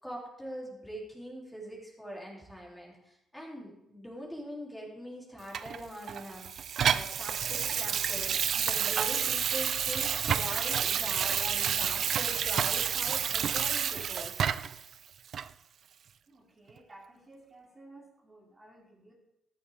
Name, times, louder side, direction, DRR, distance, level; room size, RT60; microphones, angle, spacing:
voice 1, 0.0-6.4 6.8-14.4, equal, 5° left, -3 dB, 3.2 m, -42 dB
Water tap faucet / Sink (filling or washing), 5.5-14.8 15.3-15.5, right 8 dB, 55° right, 0.4 m, -29 dB
voice 2, 16.3-19.1, right 2 dB, 25° right, -3 dB, 2.7 m, -54 dB
13.5 x 11.0 x 3.6 m, 0.83 s
cardioid pair, 130°, 0 cm